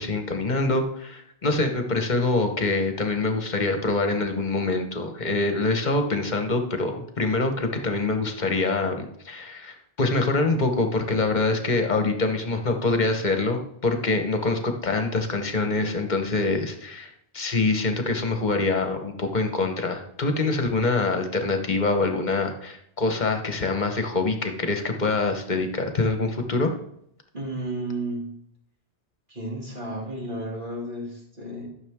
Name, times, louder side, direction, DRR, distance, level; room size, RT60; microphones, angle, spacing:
voice 1, 0.0-26.7, left 3 dB, 45° left, 6 dB, 1.2 m, -25 dB
voice 2, 27.3-28.3 29.3-31.7, right 1 dB, 45° right, -2 dB, 2.8 m, -32 dB
12.5 x 6.6 x 3.6 m, 0.72 s
omnidirectional pair, 1.1 m